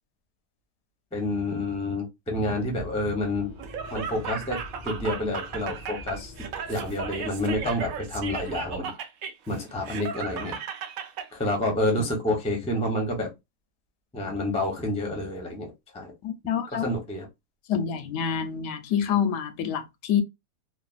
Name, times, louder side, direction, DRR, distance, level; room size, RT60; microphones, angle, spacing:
voice 1, 1.1-3.5 3.9-4.6 4.8-6.3 6.7-8.9 9.5-10.6 11.3-13.3 14.1-16.1 16.7-17.3, left 1 dB, 10° left, 0.4 m, -28 dB
Accelerating revving vroom, 2.6-8.8, left 1 dB, 65° left, 0.4 m, -44 dB
Laughter, 3.6-11.3, right 7 dB, 70° right, 0.9 m, -36 dB
voice 2, 16.2-16.9 17.7-20.2, left 8 dB, 85° left, 1.2 m, -27 dB
3.2 x 2.1 x 2.4 m
omnidirectional pair, 1.7 m